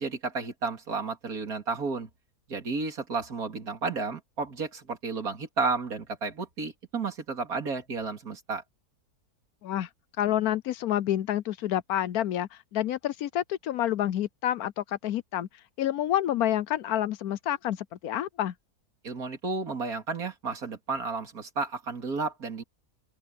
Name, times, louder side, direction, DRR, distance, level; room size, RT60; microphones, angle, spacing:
voice 1, 0.0-2.1 2.5-8.6 19.0-22.6, right 4 dB, 60° right, 3.2 m, -32 dB
voice 2, 10.2-15.5 15.8-18.5, left 12 dB, 70° left, 1.1 m, -28 dB
open air
omnidirectional pair, 1.7 m